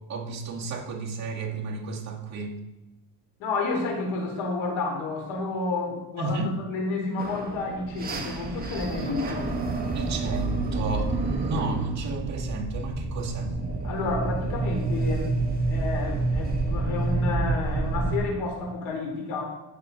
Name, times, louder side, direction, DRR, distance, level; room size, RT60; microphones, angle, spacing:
voice 1, 0.1-2.6 6.2-6.5 9.9-13.5, right 3 dB, 35° right, -3 dB, 2.4 m, -32 dB
voice 2, 3.4-9.6 13.8-15.3 15.7-19.6, left 3 dB, 85° left, 0 dB, 4.3 m, -30 dB
sound 1, 7.2-18.2, right 3 dB, 20° right, 1.6 m, -28 dB
15.5 x 7.8 x 4.1 m, 1.0 s
cardioid pair, 160°, 46 cm